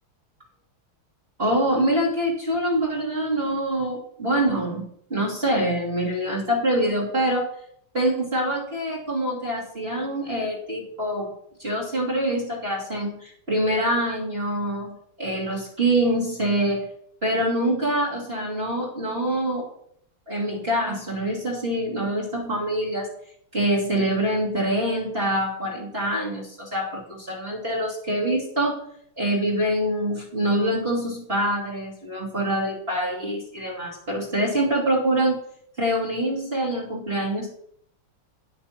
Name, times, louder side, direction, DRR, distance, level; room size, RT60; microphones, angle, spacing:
voice 1, 1.4-7.4 7.9-11.3 11.6-16.9 17.2-19.6 20.3-23.1 23.5-28.8 29.2-35.4 35.8-37.5, right 1 dB, 25° right, -7 dB, 3.0 m, -25 dB
19.5 x 6.6 x 2.9 m, 0.68 s
omnidirectional pair, 2.3 m